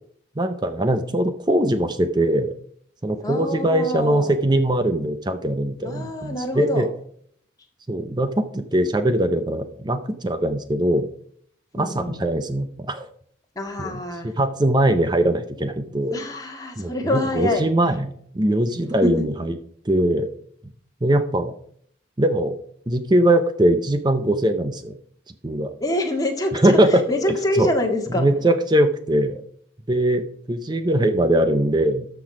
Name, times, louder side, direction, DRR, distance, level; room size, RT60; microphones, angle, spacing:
voice 1, 0.4-2.5 3.0-6.9 7.9-11.1 11.7-13.1 13.8-16.2 16.8-19.5 19.9-20.3 21.0-21.6 22.2-22.5 22.9-24.9 25.4-25.7 26.5-27.7 28.1-29.4 29.9-32.1, right 1 dB, 20° right, 9 dB, 0.6 m, -21 dB
voice 2, 3.2-4.3 5.8-6.9 11.8-12.2 13.6-14.3 16.1-17.7 19.0-19.3 25.8-28.3, left 1 dB, 20° left, 1 dB, 1.9 m, -26 dB
13.5 x 6.0 x 4.9 m, 0.64 s
head